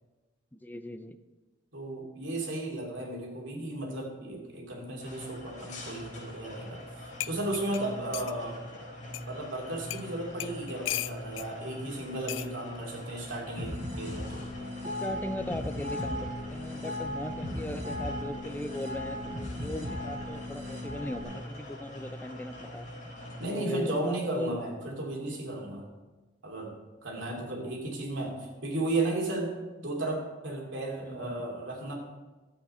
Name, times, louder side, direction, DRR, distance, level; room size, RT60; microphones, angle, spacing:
voice 1, 0.5-1.2 14.8-22.9 23.5-24.6 27.3-27.8 31.0-31.5, left 1 dB, 10° left, 8 dB, 0.5 m, -38 dB
voice 2, 1.7-6.8 7.2-8.6 9.3-14.5 23.4-25.9 26.4-31.9, right 2 dB, 75° right, -1 dB, 2.7 m, -34 dB
sound 1, 5.0-23.5, left 1 dB, 45° left, 4.0 m, -44 dB
sound 2, 6.8-6.9 7.2-8.4 9.1-9.2 9.9-10.1 10.4-11.5 12.3-12.5 13.6-13.9, left 15 dB, 75° left, 0.3 m, -36 dB
sound 3, 13.6-21.2, left 1 dB, 40° right, 3.2 m, -37 dB
12.5 x 8.3 x 4.3 m, 1.2 s
head